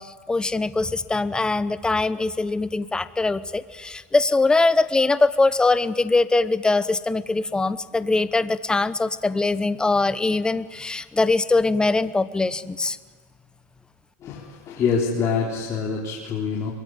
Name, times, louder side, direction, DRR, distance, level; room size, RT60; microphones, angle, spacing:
voice 1, 0.0-13.0, left 3 dB, 10° left, 14 dB, 1.0 m, -22 dB
voice 2, 14.2-16.7, left 5 dB, 35° left, -3 dB, 4.3 m, -25 dB
24.0 x 23.0 x 9.5 m, 1.4 s
supercardioid pair, 120°, 8 cm